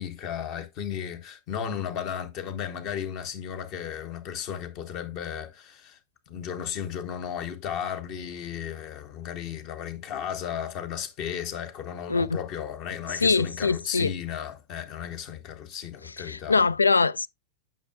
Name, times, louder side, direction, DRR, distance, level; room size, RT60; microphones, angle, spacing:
voice 1, 0.0-6.0 6.3-16.7, left 8 dB, 40° left, 1.2 m, -34 dB
voice 2, 13.2-14.1 16.3-17.3, left 4 dB, 80° left, 0.3 m, -22 dB
9.1 x 5.8 x 2.4 m
figure-of-eight pair, 90°, 0 cm